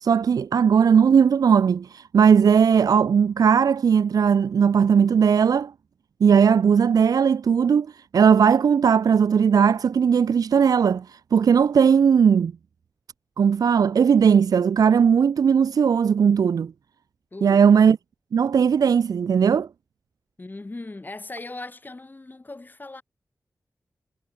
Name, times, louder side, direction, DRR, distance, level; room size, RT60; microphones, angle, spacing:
voice 1, 0.0-5.7 6.2-7.9 8.1-12.5 13.4-16.7 17.4-18.0 18.3-19.7, right 7 dB, 80° right, 0.4 m, -18 dB
voice 2, 17.3-17.6 20.4-23.0, left 2 dB, 30° left, 6.5 m, -38 dB
wide cardioid pair, 90°, 6 cm